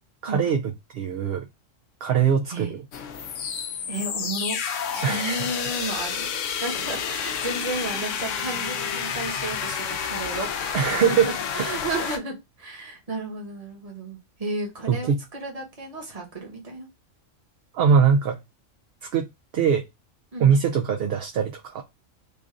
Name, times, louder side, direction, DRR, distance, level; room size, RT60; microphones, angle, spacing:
voice 1, 0.2-1.4 2.0-2.8 5.0-5.5 10.7-11.3 11.6-11.7 14.9-15.2 17.7-18.4 19.0-19.3 19.5-19.8 20.4-21.8, right 7 dB, 65° right, 0.6 m, -22 dB
voice 2, 2.5-2.8 3.9-4.6 4.9-6.3 6.6-10.8 11.0-16.9 20.3-20.5, right 2 dB, 30° right, 1.1 m, -33 dB
sound 1, 2.9-12.2, left 7 dB, 75° left, 0.9 m, -30 dB
3.2 x 2.5 x 3.6 m
omnidirectional pair, 1.3 m